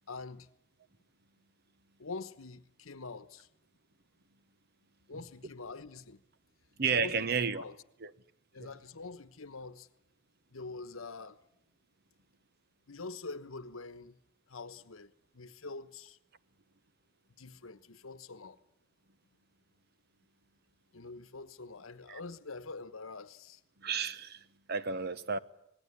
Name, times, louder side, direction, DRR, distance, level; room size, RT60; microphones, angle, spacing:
voice 1, 0.1-0.5 2.0-3.5 5.1-6.2 6.9-7.3 7.5-7.8 8.5-9.9 10.5-11.4 12.9-14.2 14.5-16.2 17.4-18.6 20.9-23.6, left 3 dB, 85° left, 1.2 m, -45 dB
voice 2, 6.8-7.6 8.0-8.1 8.6-8.7 22.1-22.2 23.8-24.4 24.7-25.4, right 5 dB, 50° right, 1.0 m, -32 dB
26.0 x 20.0 x 9.9 m
head